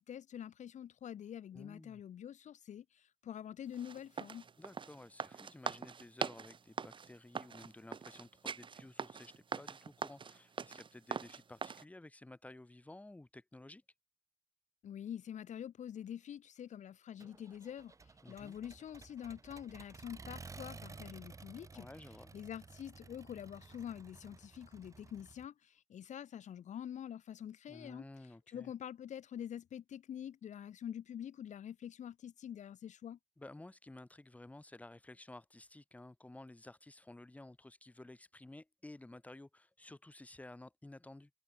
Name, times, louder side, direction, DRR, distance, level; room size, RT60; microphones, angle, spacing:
voice 1, 0.0-4.4 14.8-21.9 22.3-28.0 28.5-33.2, left 9 dB, 75° left, 1.6 m, -46 dB
voice 2, 1.5-2.0 4.6-13.8 18.2-18.6 21.7-22.3 27.7-28.7 33.4-41.3, left 2 dB, 10° left, 5.5 m, -54 dB
sound 1, 3.7-11.8, right 6 dB, 40° right, 4.1 m, -42 dB
Accelerating revving vroom, 17.2-25.5, right 4 dB, 25° right, 2.5 m, -54 dB
wide cardioid pair, 160°, 12 cm